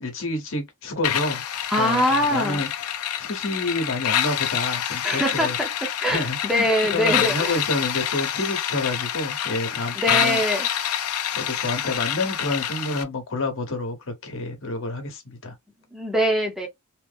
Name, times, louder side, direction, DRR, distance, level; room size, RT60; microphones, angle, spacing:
voice 1, 0.0-1.4 1.7-2.7 3.2-5.6 6.0-6.7 6.9-10.4 11.3-15.5, left 2 dB, 60° left, 1.0 m, -28 dB
sound 1, 1.0-13.0, left 10 dB, 75° left, 0.5 m, -27 dB
voice 2, 1.7-2.6 5.0-5.7 6.0-7.6 9.9-10.7 15.9-16.7, equal, ahead, 0.7 m, -23 dB
3.0 x 2.0 x 3.3 m
head